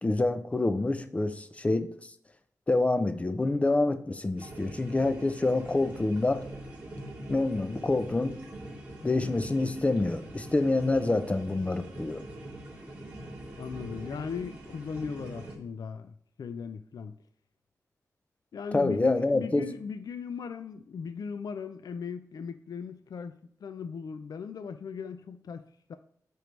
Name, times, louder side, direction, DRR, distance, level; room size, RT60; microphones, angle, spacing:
voice 1, 0.0-1.9 2.7-6.4 7.3-8.4 9.0-12.2 18.7-19.7, left 2 dB, 20° left, 10 dB, 0.5 m, -27 dB
sound 1, 4.4-15.6, right 1 dB, 25° right, 2.1 m, -43 dB
voice 2, 13.6-17.1 18.5-23.3 23.6-25.6 25.9-26.0, left 6 dB, 75° left, 10 dB, 0.4 m, -38 dB
10.0 x 4.6 x 3.2 m, 0.64 s
wide cardioid pair, 150°, 6 cm